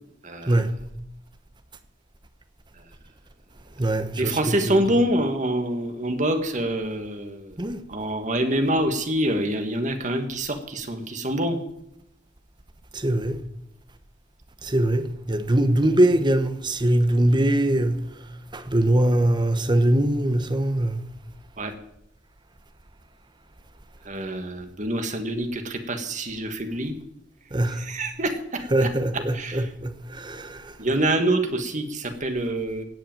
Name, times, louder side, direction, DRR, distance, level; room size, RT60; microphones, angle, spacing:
voice 1, 0.2-0.6 4.1-7.6 7.9-11.6 21.6-21.7 24.0-26.9 27.7-28.9 29.3-29.7 30.8-32.8, right 1 dB, 40° right, 1.7 m, -26 dB
voice 2, 3.8-4.9 7.6-7.8 12.9-13.4 14.6-18.1 18.5-21.0 27.5-27.8 28.7-30.7, right 1 dB, 25° right, 1.0 m, -22 dB
16.5 x 5.7 x 9.0 m
head